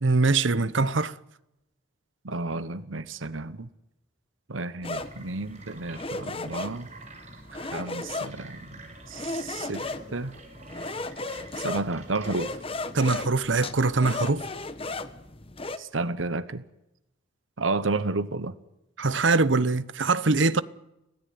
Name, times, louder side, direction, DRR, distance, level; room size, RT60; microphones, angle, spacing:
voice 1, 0.0-1.2 12.9-14.4 19.0-20.6, right 3 dB, 70° right, 0.9 m, -23 dB
voice 2, 2.2-3.7 4.5-6.9 7.5-8.8 9.1-10.4 11.6-12.6 15.8-16.6 17.6-18.6, right 3 dB, 85° right, 1.1 m, -31 dB
sound 1, 4.8-15.8, left 2 dB, 30° left, 1.2 m, -36 dB
sound 2, 5.0-12.8, right 4 dB, 35° right, 5.8 m, -49 dB
25.5 x 17.0 x 9.6 m
head